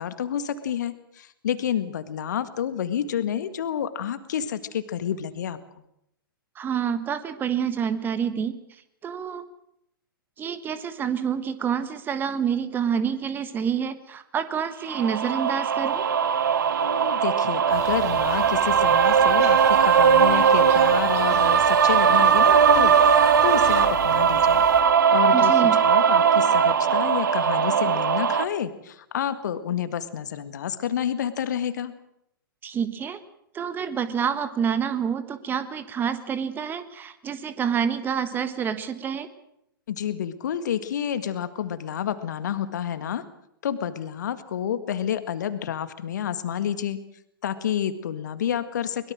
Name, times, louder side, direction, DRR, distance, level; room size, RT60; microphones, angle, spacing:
voice 1, 0.0-5.6 16.8-24.6 25.1-31.9 39.9-43.2 43.6-47.0 47.4-49.1, left 9 dB, 55° left, 12 dB, 1.8 m, -29 dB
voice 2, 6.5-8.5 9.0-9.4 10.4-16.1 25.3-25.8 32.6-33.2 33.5-39.3, right 7 dB, 15° right, 12 dB, 1.5 m, -27 dB
sound 1, 14.9-28.4, right 7 dB, 60° right, 1.4 m, -19 dB
sound 2, 17.7-24.8, right 4 dB, 45° right, 7.7 m, -37 dB
23.5 x 22.0 x 6.3 m, 0.77 s
figure-of-eight pair, 110°, 12 cm